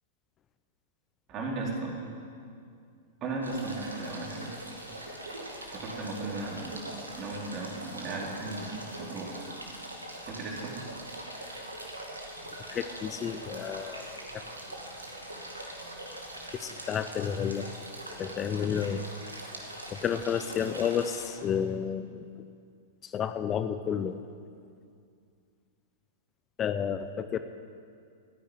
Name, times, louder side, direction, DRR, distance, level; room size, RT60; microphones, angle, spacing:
voice 1, 1.3-2.0 3.2-4.5 5.7-9.4 10.2-10.8, right 3 dB, 35° right, -2 dB, 4.3 m, -36 dB
sound 1, 3.4-21.3, right 1 dB, 85° right, 2.3 m, -42 dB
voice 2, 12.7-14.4 16.6-17.7 18.2-19.0 19.9-22.3 23.0-24.2 26.6-27.4, left 8 dB, 25° left, 10 dB, 0.7 m, -31 dB
15.0 x 10.5 x 9.4 m, 2.3 s
figure-of-eight pair, 100°, 0 cm